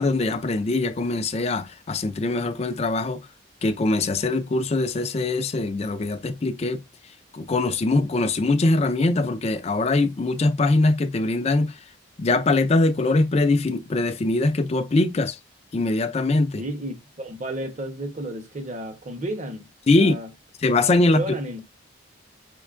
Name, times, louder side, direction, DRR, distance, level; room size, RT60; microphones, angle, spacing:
voice 1, 0.0-3.2 3.6-6.8 7.3-11.8 12.2-15.4 15.7-16.6 19.9-20.1 20.6-21.2, left 2 dB, 30° left, 0.3 m, -22 dB
voice 2, 16.6-20.3 21.1-21.6, right 1 dB, 35° right, 0.7 m, -32 dB
5.2 x 2.2 x 2.4 m
head